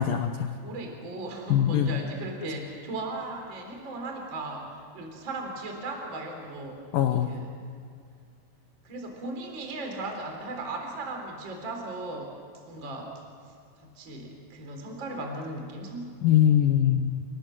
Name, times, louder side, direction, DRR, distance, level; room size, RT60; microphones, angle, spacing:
voice 1, 0.0-0.5 1.5-2.0 6.9-7.3 16.2-17.2, left 10 dB, 85° left, 5 dB, 2.0 m, -22 dB
voice 2, 0.6-6.8 7.3-7.6 8.8-12.4 12.7-13.2 13.5-16.1, right 2 dB, 25° right, 2 dB, 3.9 m, -37 dB
29.0 x 18.5 x 7.8 m, 2.4 s
omnidirectional pair, 5.4 m